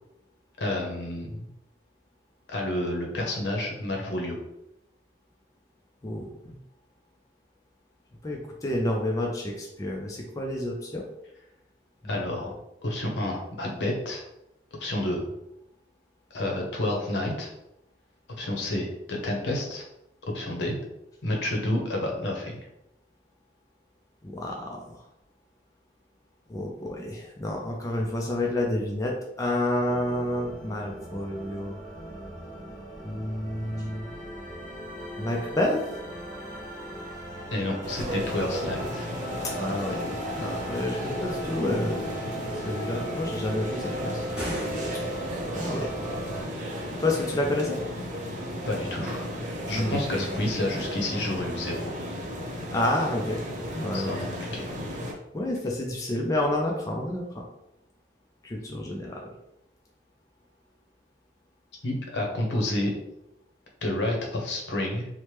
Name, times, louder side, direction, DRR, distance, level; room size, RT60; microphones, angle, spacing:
voice 1, 0.6-1.5 2.5-4.4 12.0-12.5 12.8-14.2 14.8-15.2 16.3-17.5 18.4-19.8 20.3-20.7 21.2-22.6 37.5-39.1 48.7-49.2 49.7-51.9 53.9-54.3 54.5-54.7 61.8-62.9 63.8-65.1, left 1 dB, 75° left, 0 dB, 0.7 m, -29 dB
voice 2, 6.0-6.6 8.2-11.0 12.0-12.5 24.2-25.0 26.5-31.7 33.0-34.1 35.2-35.8 39.4-40.0 40.4-42.0 42.7-44.2 45.5-45.9 47.0-47.8 49.7-50.4 52.7-53.4 53.8-54.2 55.3-57.5 58.4-59.3, left 1 dB, 20° left, 0 dB, 0.3 m, -29 dB
sound 1, 29.9-46.4, right 1 dB, 40° left, 1.1 m, -38 dB
sound 2, 37.8-55.1, equal, 45° right, 0.6 m, -34 dB
sound 3, 44.2-45.5, equal, 5° right, 0.8 m, -36 dB
2.9 x 2.1 x 3.2 m, 0.85 s
head